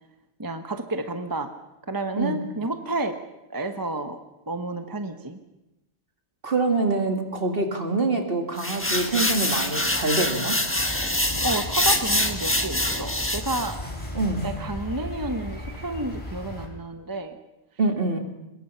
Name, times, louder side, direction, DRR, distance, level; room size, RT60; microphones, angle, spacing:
voice 1, 0.4-1.5 1.9-3.2 3.5-4.2 4.5-5.4 11.4-13.8 14.4-17.4, right 2 dB, 20° right, 7 dB, 1.0 m, -30 dB
voice 2, 6.4-10.6 14.1-14.5 17.8-18.2, right 3 dB, 55° right, 4 dB, 2.5 m, -25 dB
sound 1, 8.6-13.7, left 1 dB, 10° left, 1.4 m, -25 dB
sound 2, 10.7-16.7, left 1 dB, 25° left, 3.4 m, -36 dB
22.5 x 21.0 x 5.7 m, 0.96 s
omnidirectional pair, 1.1 m